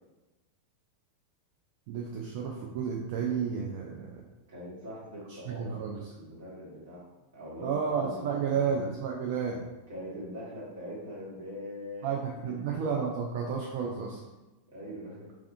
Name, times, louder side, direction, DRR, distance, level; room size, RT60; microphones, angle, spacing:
voice 1, 1.9-4.2 5.3-6.0 7.6-9.6 12.0-14.2, right 6 dB, 50° right, -2 dB, 0.4 m, -32 dB
voice 2, 4.5-7.0 7.3-8.7 9.9-12.8 14.7-15.3, equal, 65° right, -7 dB, 1.3 m, -42 dB
3.4 x 2.4 x 2.5 m, 1.1 s
figure-of-eight pair, 90°, 0 cm